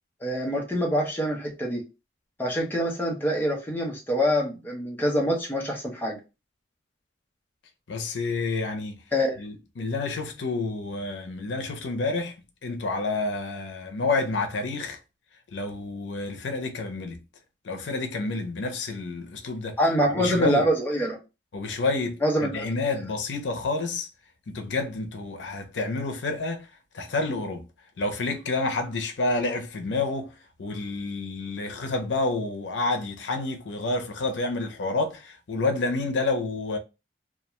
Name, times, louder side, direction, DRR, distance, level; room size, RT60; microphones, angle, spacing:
voice 1, 0.2-1.8 2.4-6.2 9.1-9.3 19.8-21.2 22.2-22.6, equal, 10° left, 0.6 m, -25 dB
voice 2, 7.9-9.0 9.4-12.3 12.6-15.0 15.5-17.2 17.6-19.8 20.2-20.6 21.5-24.1 24.5-26.7 26.9-27.6 28.0-30.3 30.6-36.8, left 3 dB, 90° left, 0.6 m, -29 dB
2.3 x 2.2 x 2.9 m
head